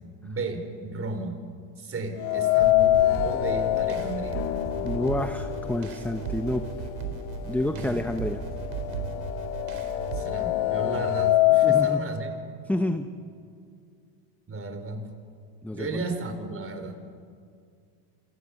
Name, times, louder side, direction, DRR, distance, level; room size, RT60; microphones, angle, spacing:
voice 1, 0.2-1.4 1.8-4.5 7.7-8.0 10.1-12.4 14.5-15.1 15.7-17.0, right 3 dB, 25° right, 7 dB, 4.3 m, -34 dB
sound 1, 2.2-6.2 6.6-6.7 7.7-7.8 8.1-12.0, left 14 dB, 85° left, 1.2 m, -24 dB
sound 2, 2.6-10.2, right 8 dB, 80° right, 4.2 m, -36 dB
sound 3, 4.3-10.1, left 14 dB, 60° left, 1.7 m, -42 dB
voice 2, 4.8-6.9 7.5-8.4 11.6-12.0 12.7-13.1 15.6-16.0, left 1 dB, 5° left, 7 dB, 1.0 m, -29 dB
28.0 x 26.5 x 7.2 m, 2.3 s
supercardioid pair, 115°, 49 cm